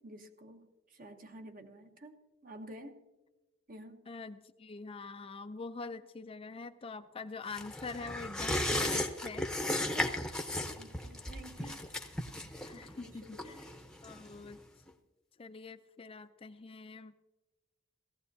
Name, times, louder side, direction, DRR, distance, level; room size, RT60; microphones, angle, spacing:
voice 1, 0.0-3.0 3.7-4.0 9.9-10.2 10.7-11.8 12.7-13.6, right 1 dB, 50° right, 5 dB, 1.1 m, -51 dB
voice 2, 4.1-9.5 11.6-11.8 12.6-13.6 14.0-14.6 15.4-17.3, left 4 dB, 30° left, 9 dB, 0.4 m, -45 dB
sound 1, 7.5-14.6 14.9-15.0, left 1 dB, 5° left, 0.8 m, -36 dB
18.0 x 15.0 x 2.7 m, 1.1 s
head